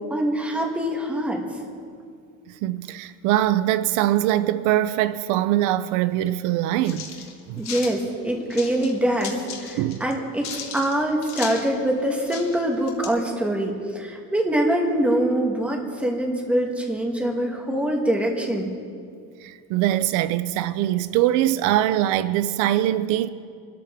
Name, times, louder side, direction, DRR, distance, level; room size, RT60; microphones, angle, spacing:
voice 1, 0.1-1.4 7.6-18.7, right 1 dB, 5° right, 1.3 m, -24 dB
voice 2, 2.6-7.1 7.5-7.6 9.8-10.0 19.4-23.3, right 13 dB, 80° right, 0.6 m, -22 dB
sound 1, 6.8-7.9 8.5-8.9 9.2-10.1 10.4-11.7 12.0-12.1 12.3-13.1, left 7 dB, 60° left, 2.0 m, -36 dB
23.5 x 13.0 x 3.6 m
cardioid pair, 180°, 30 cm